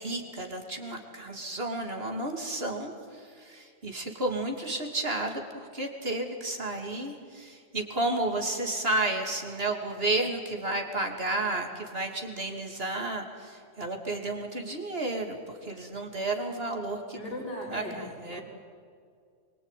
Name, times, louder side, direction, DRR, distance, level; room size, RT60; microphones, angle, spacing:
voice 1, 0.0-17.2 17.7-18.4, right 2 dB, 55° right, 3 dB, 3.2 m, -32 dB
voice 2, 17.1-17.9 18.3-18.4, left 1 dB, 80° left, -3 dB, 5.0 m, -37 dB
25.5 x 23.5 x 9.4 m, 2.2 s
omnidirectional pair, 1.2 m